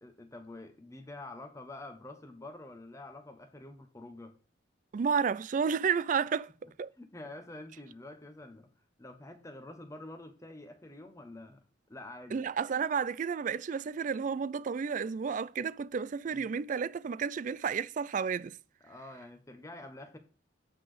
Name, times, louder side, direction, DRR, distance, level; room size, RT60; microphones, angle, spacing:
voice 1, 0.0-4.4 7.0-8.7 9.0-11.6 11.9-12.5 16.3-16.5 18.8-20.2, left 2 dB, 15° left, 1.1 m, -47 dB
voice 2, 4.9-6.5 6.8-6.9 12.3-18.6, right 6 dB, 45° right, 0.3 m, -31 dB
8.4 x 4.1 x 5.0 m
head